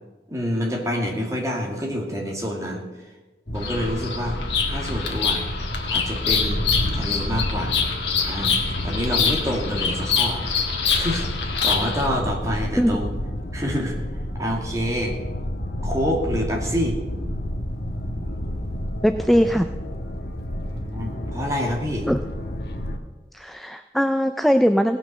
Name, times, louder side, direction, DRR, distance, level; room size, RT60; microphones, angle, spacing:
voice 1, 0.3-2.8 3.5-4.4 4.7-5.4 5.9-7.7 8.2-8.5 8.8-10.4 10.9-13.1 13.5-14.0 14.4-15.2 15.8-17.0 20.7-22.1, equal, 20° right, 0 dB, 2.1 m, -27 dB
sound 1, 3.5-23.0, equal, 65° left, 1.4 m, -30 dB
Bird vocalization bird call bird song, 3.6-12.1, left 6 dB, 80° left, 1.8 m, -25 dB
voice 2, 19.0-19.7 22.1-22.2 23.3-25.0, equal, ahead, 8 dB, 0.3 m, -20 dB
17.5 x 5.9 x 6.6 m, 1.2 s
head